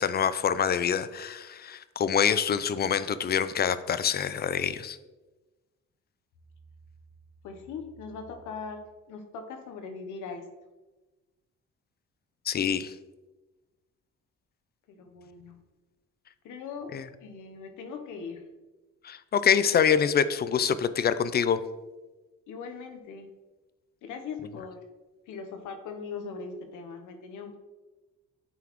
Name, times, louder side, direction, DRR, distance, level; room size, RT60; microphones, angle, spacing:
voice 1, 0.0-5.0 12.5-12.9 16.9-17.0 19.0-21.6, left 7 dB, 35° left, 14 dB, 0.4 m, -25 dB
voice 2, 7.4-10.5 14.9-15.6 16.4-16.9 17.2-18.4 19.4-19.7 22.5-23.3 24.0-24.8 25.3-27.6, left 5 dB, 85° left, 5 dB, 0.9 m, -40 dB
9.2 x 3.9 x 3.0 m, 1.2 s
cardioid pair, 90°, 30 cm